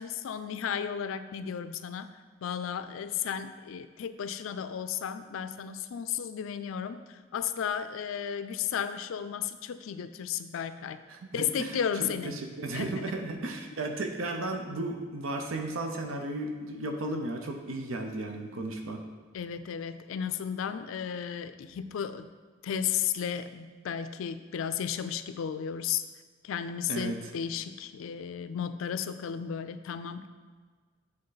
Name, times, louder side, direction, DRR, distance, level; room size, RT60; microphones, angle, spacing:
voice 1, 0.0-2.1 2.4-11.0 11.3-12.3 12.7-13.1 19.3-22.3 22.6-26.0 26.4-30.3, left 8 dB, 85° left, 11 dB, 0.3 m, -34 dB
voice 2, 11.1-19.0 26.9-27.2, right 2 dB, 90° right, 4 dB, 0.6 m, -34 dB
7.6 x 3.7 x 4.0 m, 1.5 s
head